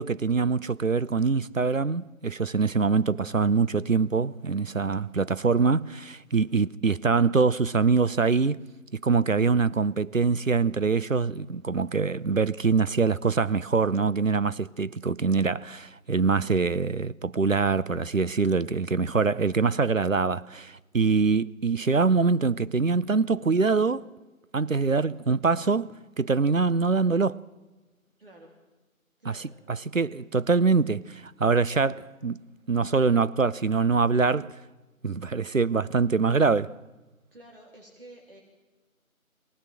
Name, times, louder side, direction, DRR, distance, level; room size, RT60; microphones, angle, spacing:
voice 1, 0.0-8.6 8.9-24.1 24.5-27.4 29.3-29.4 29.7-32.4 32.7-34.6 35.0-36.8, right 4 dB, 65° right, 0.8 m, -24 dB
voice 2, 28.2-28.5 29.2-29.5 37.3-38.4, right 1 dB, 40° right, 3.6 m, -50 dB
23.5 x 19.0 x 7.6 m
figure-of-eight pair, 170°, 43 cm